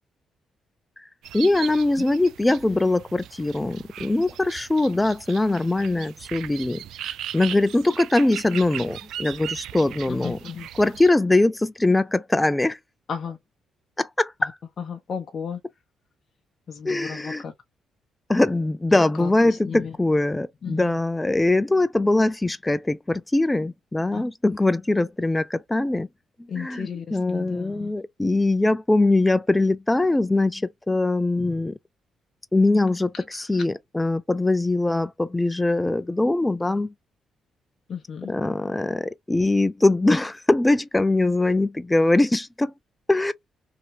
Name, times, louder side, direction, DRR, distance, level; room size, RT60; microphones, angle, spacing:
sound 1, 1.2-11.1, right 11 dB, 80° right, 0.3 m, -38 dB
voice 1, 1.3-10.4 10.8-12.8 14.0-14.5 16.9-17.4 18.3-26.1 26.6-31.8 32.5-36.9 38.3-42.7 43.1-43.3, left 2 dB, 15° left, 0.4 m, -22 dB
voice 2, 10.1-10.7 13.1-13.4 14.4-14.5 14.8-15.6 16.7-17.5 18.9-20.0 20.6-21.0 24.1-24.2 26.5-27.9 33.1-33.6 37.9-38.3, left 6 dB, 50° left, 0.7 m, -34 dB
2.8 x 2.8 x 2.6 m
cardioid pair, 90°, 0 cm